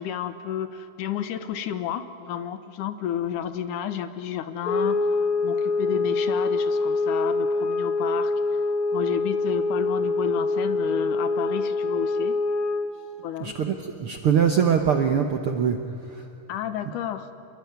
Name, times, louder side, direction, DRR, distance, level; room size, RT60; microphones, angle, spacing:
voice 1, 0.0-5.0 5.4-8.3 8.9-12.4 13.2-13.5 16.5-17.3, left 9 dB, 70° left, 11 dB, 2.5 m, -31 dB
sound 1, 4.6-13.0, left 3 dB, 50° left, 1.9 m, -25 dB
voice 2, 13.4-16.3, right 7 dB, 65° right, 5 dB, 1.4 m, -23 dB
27.5 x 22.0 x 9.5 m, 2.8 s
omnidirectional pair, 3.9 m